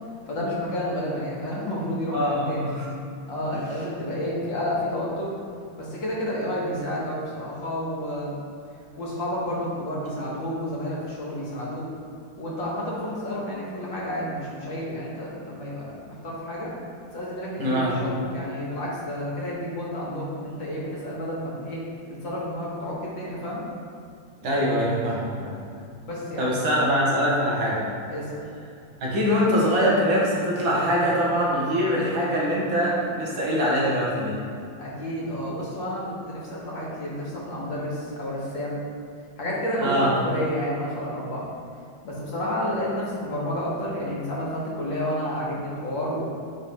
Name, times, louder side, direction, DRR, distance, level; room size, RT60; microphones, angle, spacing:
voice 1, 0.3-2.7 3.3-5.3 5.8-8.3 9.0-11.9 12.4-16.7 17.1-21.8 22.1-23.6 26.0-26.5 28.1-28.4 34.8-38.8 39.4-41.5 42.0-46.2, equal, 70° left, -5 dB, 2.1 m, -30 dB
voice 2, 2.1-2.9 17.6-18.0 24.4-25.5 26.4-27.8 29.0-34.3 39.8-40.1, equal, 75° right, -5 dB, 2.1 m, -23 dB
8.8 x 3.4 x 4.3 m, 2.4 s
omnidirectional pair, 2.2 m